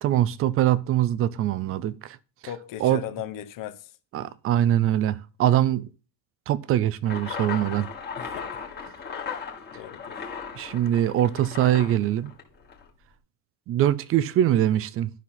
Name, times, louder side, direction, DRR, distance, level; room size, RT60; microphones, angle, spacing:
voice 1, 0.0-2.2 2.8-3.0 4.1-5.9 6.5-7.9 10.6-12.3 13.7-15.1, right 12 dB, 30° right, 0.4 m, -23 dB
voice 2, 2.4-4.0 8.1-8.6 9.7-10.3, left 11 dB, 40° left, 1.1 m, -38 dB
sound 1, 7.0-12.9, left 6 dB, 20° left, 1.7 m, -37 dB
12.0 x 5.8 x 3.9 m
cardioid pair, 165°, 47 cm